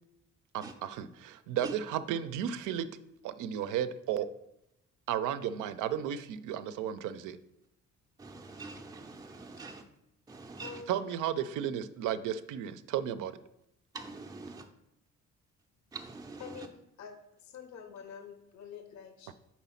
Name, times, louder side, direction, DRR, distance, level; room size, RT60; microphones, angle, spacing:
voice 1, 0.5-2.9 3.2-4.3 5.1-7.4 10.9-13.4 19.3-19.4, right 10 dB, 85° right, 0.5 m, -34 dB
voice 2, 8.2-9.9 10.3-10.8 13.9-14.7 15.9-16.7, right 3 dB, 15° right, 0.4 m, -44 dB
voice 3, 10.6-11.0 16.4-19.3, left 6 dB, 65° left, 0.7 m, -47 dB
4.3 x 4.0 x 5.6 m
cardioid pair, 90°, 30 cm